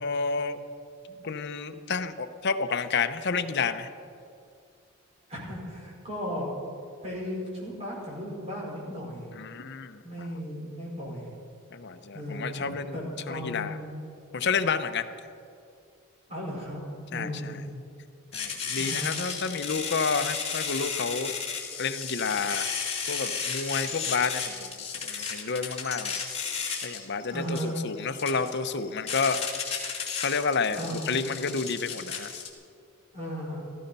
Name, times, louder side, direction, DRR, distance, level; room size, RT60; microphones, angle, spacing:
voice 1, 0.0-0.6 1.2-3.9 9.4-10.3 11.7-12.9 13.3-13.8 14.3-15.1 17.1-17.3 18.3-21.3 21.8-22.7 23.1-24.7 25.0-26.2 26.8-29.4 30.2-32.3, left 5 dB, 55° left, 9 dB, 0.8 m, -30 dB
voice 2, 5.3-6.5 7.0-9.3 10.0-11.3 12.1-14.0 16.3-16.8 17.1-17.7 18.7-19.1 27.3-27.8 30.7-31.1 33.1-33.6, equal, 30° right, -4 dB, 4.9 m, -36 dB
sound 1, 18.3-32.5, left 6 dB, 30° left, 2.4 m, -33 dB
16.0 x 14.5 x 5.5 m, 2.4 s
head